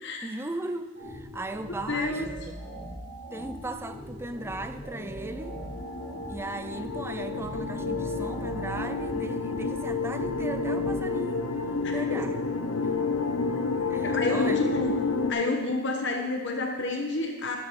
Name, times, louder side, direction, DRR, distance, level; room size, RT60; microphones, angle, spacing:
voice 1, 0.2-2.5 3.3-5.6 6.3-11.5 11.9-12.4 12.8-12.9 13.9-15.0, right 2 dB, 10° right, 9 dB, 0.4 m, -37 dB
sound 1, 1.0-10.9, right 1 dB, 55° right, 3.2 m, -41 dB
voice 2, 1.9-2.3 11.8-12.0 14.0-14.9 15.3-17.6, left 2 dB, 60° left, 3 dB, 1.1 m, -29 dB
sound 2, 4.6-15.3, left 4 dB, 85° left, 0.7 m, -30 dB
12.0 x 7.9 x 3.7 m, 1.3 s
head